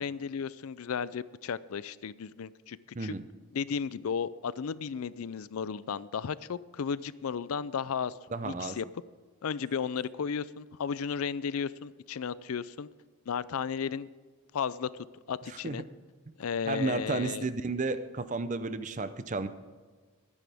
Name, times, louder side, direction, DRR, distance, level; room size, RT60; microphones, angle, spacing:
voice 1, 0.0-3.1 3.5-8.9 9.4-12.9 13.3-14.1 14.5-15.8 16.4-17.5, left 6 dB, 80° left, 18 dB, 0.4 m, -34 dB
voice 2, 8.3-8.8 15.6-15.8 16.7-19.5, right 3 dB, 35° right, 12 dB, 0.6 m, -32 dB
22.0 x 9.9 x 3.5 m, 1.4 s
head